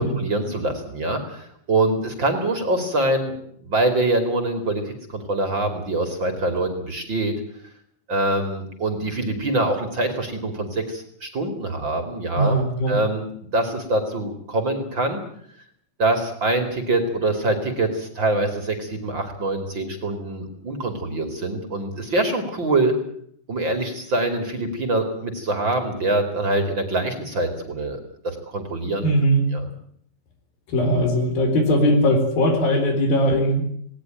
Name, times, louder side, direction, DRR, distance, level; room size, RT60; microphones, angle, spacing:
voice 1, 0.0-3.3 3.6-7.3 8.1-12.6 12.9-13.3 13.5-15.2 16.0-22.9 23.5-29.1 29.5-29.7, right 2 dB, 35° right, 7 dB, 2.9 m, -24 dB
voice 2, 12.4-13.0 29.0-29.4 30.7-33.6, equal, 70° left, 6 dB, 5.9 m, -19 dB
19.0 x 18.5 x 9.1 m, 0.65 s
omnidirectional pair, 4.3 m